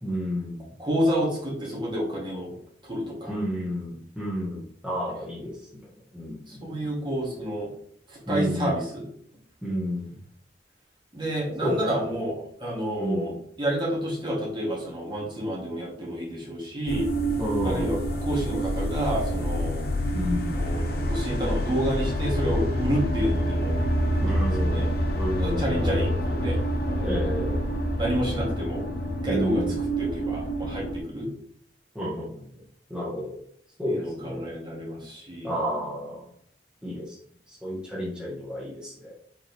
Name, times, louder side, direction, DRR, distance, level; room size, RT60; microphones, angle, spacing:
voice 1, 0.0-0.6 3.3-5.7 6.1-6.9 8.3-8.7 9.6-10.2 11.6-11.8 12.9-13.3 17.4-17.9 20.1-20.7 24.2-24.8 25.1-25.9 27.0-27.6 29.3-29.6 31.9-32.4 32.9-33.4 33.8-34.5 35.4-36.2 36.8-37.1 37.5-39.1, equal, 5° right, -8 dB, 1.6 m, -31 dB
voice 2, 0.8-2.6 2.8-3.4 6.5-7.7 8.1-9.1 11.1-17.1 17.6-19.9 20.5-24.9 25.4-27.1 28.0-28.8 29.2-31.3 33.9-35.6, equal, 25° right, -4 dB, 2.5 m, -30 dB
sound 1, 16.9-31.0, equal, 60° left, 1.0 m, -27 dB
7.5 x 4.7 x 3.5 m, 0.66 s
head